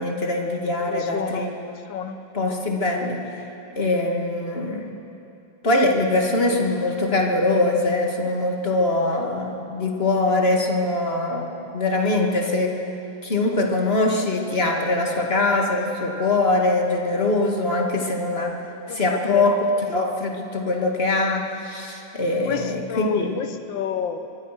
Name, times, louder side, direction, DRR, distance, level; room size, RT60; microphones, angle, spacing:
voice 1, 0.0-1.5 2.3-3.3 3.7-5.0 5.6-12.8 13.2-18.6 18.9-19.6 19.9-23.4, left 2 dB, 35° left, 1 dB, 2.3 m, -22 dB
voice 2, 0.9-2.2 18.9-19.6 22.4-24.3, left 8 dB, 85° left, 9 dB, 1.8 m, -30 dB
24.0 x 22.5 x 6.0 m, 2.8 s
omnidirectional pair, 2.0 m